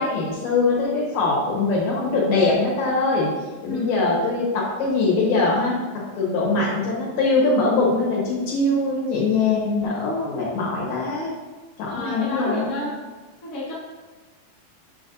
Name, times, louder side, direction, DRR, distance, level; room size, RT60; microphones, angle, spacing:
voice 1, 0.0-3.3 3.6-5.8 6.1-11.3 11.8-12.7, left 3 dB, 65° left, -5 dB, 2.4 m, -22 dB
voice 2, 3.7-4.0 11.9-12.9 13.4-13.7, left 1 dB, 35° left, -8 dB, 1.3 m, -31 dB
7.3 x 5.2 x 2.6 m, 1.3 s
omnidirectional pair, 4.1 m